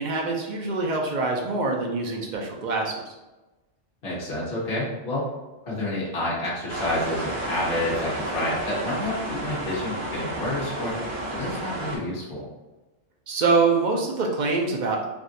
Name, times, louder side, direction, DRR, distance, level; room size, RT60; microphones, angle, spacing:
voice 1, 0.0-3.1 13.3-15.1, right 3 dB, 70° right, 0 dB, 0.4 m, -25 dB
voice 2, 4.0-5.3 5.7-12.4, left 1 dB, 55° left, -7 dB, 1.3 m, -29 dB
sound 1, 6.7-12.0, right 1 dB, 85° right, 1.3 m, -31 dB
3.5 x 2.5 x 2.6 m, 1.1 s
omnidirectional pair, 1.3 m